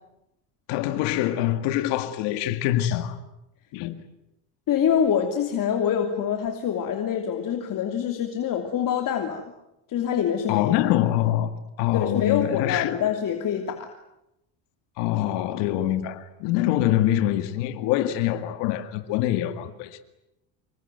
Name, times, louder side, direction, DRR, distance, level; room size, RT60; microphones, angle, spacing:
voice 1, 0.7-3.2 3.7-4.0 10.5-13.0 15.0-20.0, left 13 dB, 90° left, 2.2 m, -24 dB
voice 2, 4.7-9.4 9.9-10.7 11.9-13.9, left 8 dB, 50° left, 3.0 m, -25 dB
26.5 x 23.5 x 9.3 m
cardioid pair, 135°, 40 cm